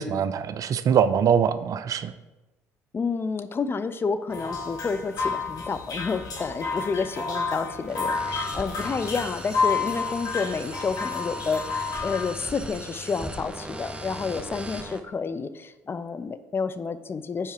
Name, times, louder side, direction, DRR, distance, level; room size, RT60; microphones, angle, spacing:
voice 1, 0.0-2.1, right 7 dB, 50° right, 14 dB, 0.4 m, -23 dB
voice 2, 2.9-17.5, left 5 dB, 30° left, 11 dB, 0.4 m, -30 dB
sound 1, 4.3-12.3, left 4 dB, 55° left, 1.9 m, -30 dB
sound 2, 7.9-15.0, right 1 dB, 10° right, 0.8 m, -38 dB
5.5 x 4.8 x 4.5 m, 1.1 s
hypercardioid pair, 55°, 8 cm